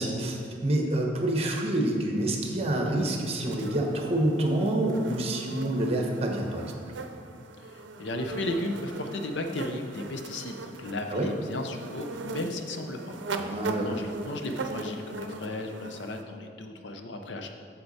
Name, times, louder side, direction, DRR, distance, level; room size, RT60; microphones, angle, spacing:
voice 1, 0.0-6.8 11.1-11.3 13.4-14.0, right 1 dB, 35° right, 1 dB, 1.0 m, -27 dB
sound 1, 3.0-16.2, right 2 dB, 90° right, 0.6 m, -40 dB
voice 2, 7.6-17.5, left 1 dB, 75° left, 5 dB, 0.7 m, -35 dB
7.8 x 6.8 x 4.2 m, 2.2 s
head